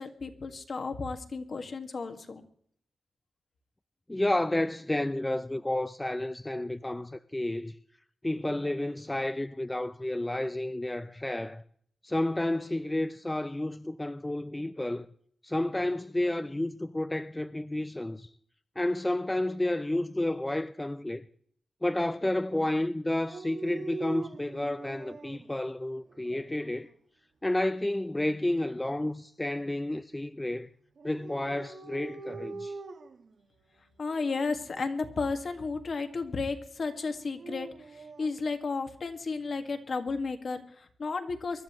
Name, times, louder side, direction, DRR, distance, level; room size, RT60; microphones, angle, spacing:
voice 1, 0.0-2.4 34.0-37.7 38.2-41.6, left 4 dB, 50° left, 1.8 m, -33 dB
voice 2, 4.1-7.8 8.2-11.6 12.0-15.1 15.4-18.3 18.8-21.3 21.8-26.9 27.4-30.7 31.0-32.8, left 1 dB, 15° left, 0.5 m, -31 dB
Dog, 23.2-25.5 26.1-26.8 31.0-33.3 34.1-34.5 37.1-38.4, right 4 dB, 65° right, 1.6 m, -43 dB
24.5 x 13.0 x 3.1 m
wide cardioid pair, 115°, 0 cm